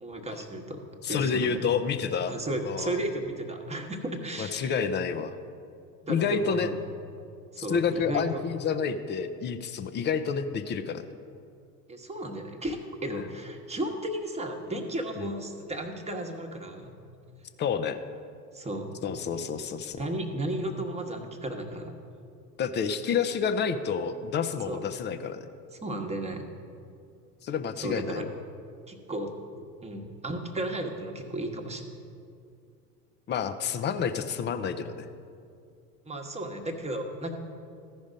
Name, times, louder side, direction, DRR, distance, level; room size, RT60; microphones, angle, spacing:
voice 1, 0.0-0.8 1.1-1.5 2.3-4.7 6.0-6.7 7.5-8.4 11.9-17.0 18.5-18.9 19.9-21.9 24.7-24.9 25.7-26.5 27.8-28.3 28.9-31.8 36.0-37.3, right 1 dB, 15° right, 2 dB, 1.1 m, -34 dB
voice 2, 1.0-2.4 2.6-3.0 4.4-5.4 6.1-6.7 7.6-11.0 13.1-13.3 15.2-15.3 17.6-18.0 19.0-20.0 22.6-25.5 27.4-28.3 33.3-35.1, left 6 dB, 25° left, 10 dB, 0.5 m, -29 dB
14.5 x 5.2 x 5.1 m, 2.5 s
hypercardioid pair, 85°, 49 cm